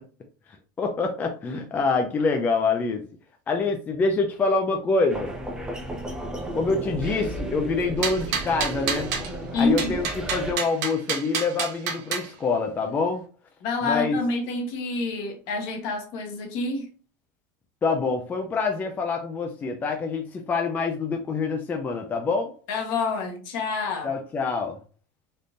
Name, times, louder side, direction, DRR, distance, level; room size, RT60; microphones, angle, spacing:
voice 1, 0.8-3.0 3.5-5.3 6.5-9.1 9.6-13.2 13.8-14.2 17.8-22.5 24.0-24.8, left 4 dB, 20° left, 0.4 m, -26 dB
sound 1, 5.1-10.5, right 1 dB, 5° right, 0.7 m, -34 dB
sound 2, 8.0-9.3 9.8-12.3, right 6 dB, 70° right, 0.9 m, -29 dB
voice 2, 9.5-10.0 13.6-16.9 22.7-24.1, left 3 dB, 55° left, 1.0 m, -27 dB
3.6 x 2.6 x 2.5 m
supercardioid pair, 145°, 10 cm